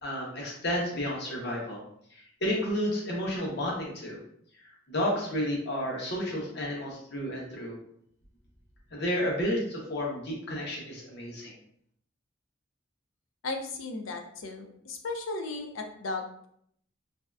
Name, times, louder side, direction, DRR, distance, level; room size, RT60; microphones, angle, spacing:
voice 1, 0.0-1.8 2.1-4.2 4.6-7.7 8.9-11.5, equal, 60° left, -2 dB, 0.9 m, -31 dB
voice 2, 13.4-16.5, left 3 dB, 85° left, 4 dB, 0.5 m, -36 dB
3.2 x 2.7 x 2.3 m, 0.68 s
head